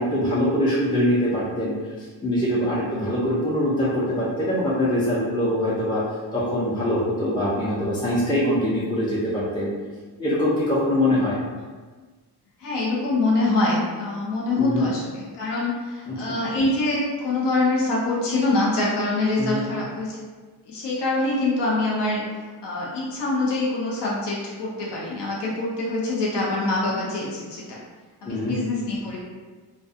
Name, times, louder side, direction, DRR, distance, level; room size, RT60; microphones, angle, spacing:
voice 1, 0.0-1.7 2.2-6.0 6.3-9.7 10.2-11.4 14.5-14.9 16.1-16.2 19.4-19.6 28.3-28.5, left 1 dB, 10° left, -8 dB, 0.5 m, -23 dB
voice 2, 12.6-20.2 20.6-22.2 22.6-27.8 28.2-29.2, left 2 dB, 75° left, -5 dB, 0.7 m, -25 dB
2.3 x 2.2 x 2.7 m, 1.4 s
cardioid pair, 75°, 42 cm